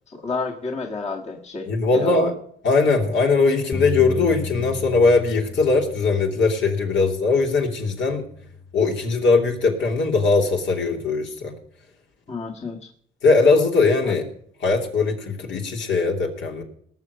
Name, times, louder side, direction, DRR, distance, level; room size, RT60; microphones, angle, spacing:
voice 1, 0.1-2.3 12.3-12.8 14.1-14.2, left 4 dB, 35° left, 0 dB, 1.7 m, -30 dB
voice 2, 1.7-2.3 2.6-8.2 8.7-11.5 13.2-14.2 14.6-16.6, left 3 dB, 70° left, 1 dB, 2.9 m, -20 dB
Bass guitar, 3.7-10.0, left 4 dB, 20° left, 1.4 m, -35 dB
18.5 x 6.7 x 6.7 m, 0.63 s
cardioid pair, 90°, 20 cm